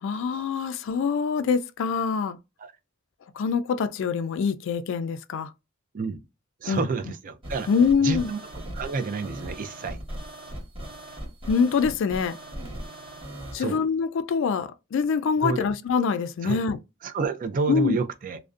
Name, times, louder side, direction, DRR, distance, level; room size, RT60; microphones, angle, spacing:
voice 1, 0.0-2.4 3.4-5.5 6.7-6.8 7.7-8.3 11.5-12.4 13.5-16.8 17.7-18.0, left 5 dB, 65° left, 0.3 m, -24 dB
voice 2, 6.6-7.7 8.0-8.4 8.7-10.0 13.6-13.8 15.4-15.7 16.4-16.6 17.0-18.4, right 4 dB, 45° right, 0.4 m, -29 dB
sound 1, 7.4-13.6, right 1 dB, 25° right, 1.0 m, -38 dB
2.5 x 2.1 x 2.3 m
head